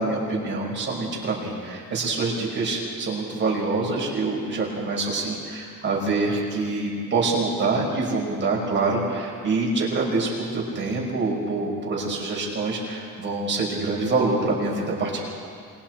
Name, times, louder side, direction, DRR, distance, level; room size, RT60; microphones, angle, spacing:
voice 1, 0.0-15.2, right 3 dB, 35° right, -3 dB, 5.6 m, -25 dB
27.5 x 22.0 x 4.6 m, 2.3 s
cardioid pair, 160°, 33 cm